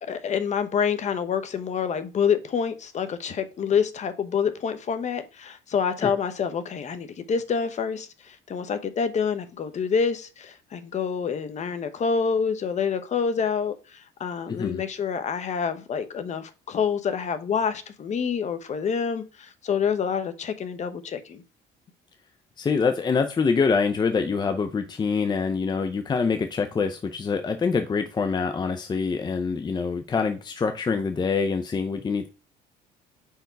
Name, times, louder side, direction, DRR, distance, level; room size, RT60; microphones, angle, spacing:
voice 1, 0.0-21.4, left 6 dB, 45° left, 0.9 m, -27 dB
voice 2, 14.5-14.8 22.6-32.3, left 5 dB, 25° left, 0.6 m, -25 dB
5.2 x 4.7 x 4.6 m
cardioid pair, 110°, 17 cm